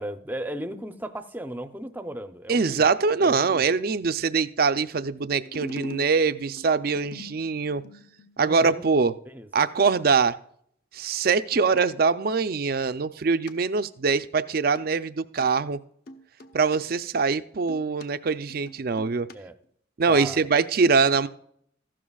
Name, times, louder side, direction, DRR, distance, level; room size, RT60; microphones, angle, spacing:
voice 1, 0.0-2.8 3.2-3.7 8.4-8.8 9.3-9.5 19.3-19.5 20.1-20.5, right 1 dB, 10° right, 9 dB, 0.6 m, -36 dB
voice 2, 2.5-7.8 8.4-9.1 9.5-10.4 10.9-15.8 16.5-19.3 20.0-21.3, right 5 dB, 50° right, 12 dB, 0.5 m, -23 dB
sound 1, 5.4-8.4 11.5-11.8 13.5-13.6 13.9-14.1 14.7-14.8 15.4-15.5 16.1-16.8 17.2-18.1 18.5-19.3 19.6-19.7, left 1 dB, 55° left, 0.9 m, -43 dB
15.0 x 12.5 x 2.4 m, 0.66 s
head